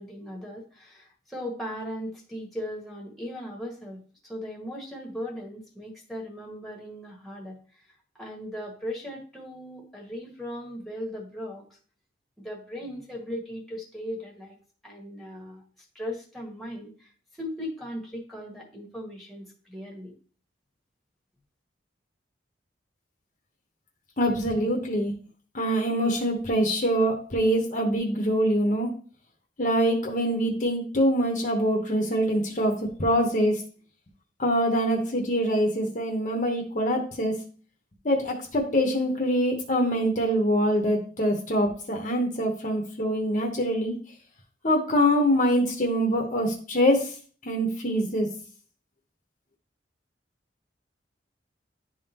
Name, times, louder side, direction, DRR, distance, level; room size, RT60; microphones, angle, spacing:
voice 1, 0.0-7.9 8.1-11.6 12.4-14.6 14.8-15.6 15.9-20.1, equal, ahead, -2 dB, 1.4 m, -38 dB
voice 2, 24.2-25.1 25.5-28.9 29.6-33.6 34.4-37.3 38.0-43.9 44.6-47.1 47.4-48.3, equal, 40° left, 1 dB, 1.0 m, -24 dB
11.0 x 3.7 x 2.9 m, 0.42 s
head